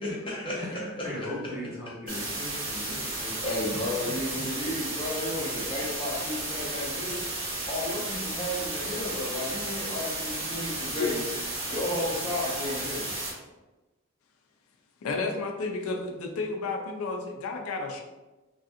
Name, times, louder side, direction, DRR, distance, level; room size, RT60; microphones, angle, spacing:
voice 1, 0.0-1.4 2.5-2.6 3.1-7.4 7.7-11.2 11.7-13.1, left 1 dB, 25° left, -4 dB, 0.7 m, -33 dB
voice 2, 0.6-3.4, equal, 15° right, -8 dB, 1.0 m, -38 dB
sound 1, 2.1-13.3, right 2 dB, 75° right, 1.2 m, -33 dB
voice 3, 15.0-18.0, left 3 dB, 85° left, 3 dB, 0.4 m, -31 dB
3.2 x 2.4 x 2.6 m, 1.1 s
head